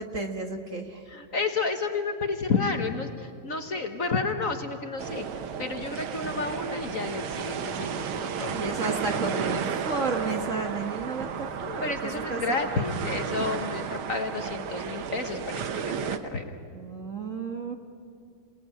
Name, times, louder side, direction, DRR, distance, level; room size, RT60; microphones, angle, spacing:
voice 1, 0.0-1.0 8.5-11.9 12.3-12.8 16.7-17.7, right 3 dB, 40° right, 4 dB, 1.5 m, -32 dB
voice 2, 1.1-8.6 11.8-16.5, left 4 dB, 45° left, 5 dB, 1.6 m, -31 dB
sound 1, 5.0-16.2, right 7 dB, 85° right, 2.0 m, -33 dB
sound 2, 6.2-6.5 6.9-7.1 7.8-8.0 8.3-8.8 9.5-9.8 10.2-10.6 11.2-11.7, right 1 dB, 60° right, 8.5 m, -42 dB
28.0 x 19.0 x 9.0 m, 2.5 s
omnidirectional pair, 2.2 m